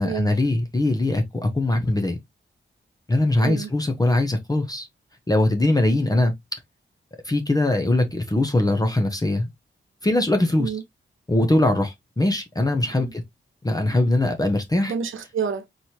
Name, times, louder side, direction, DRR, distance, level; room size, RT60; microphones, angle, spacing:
voice 1, 0.0-2.2 3.1-4.9 5.3-6.3 7.2-9.5 10.0-10.7 11.3-13.2 13.6-14.9, left 1 dB, 20° left, 0.8 m, -21 dB
voice 2, 3.4-3.7 10.6-10.8 13.0-13.1 14.9-15.7, right 6 dB, 80° right, 1.0 m, -28 dB
4.3 x 3.3 x 2.8 m
wide cardioid pair, 95°, 20 cm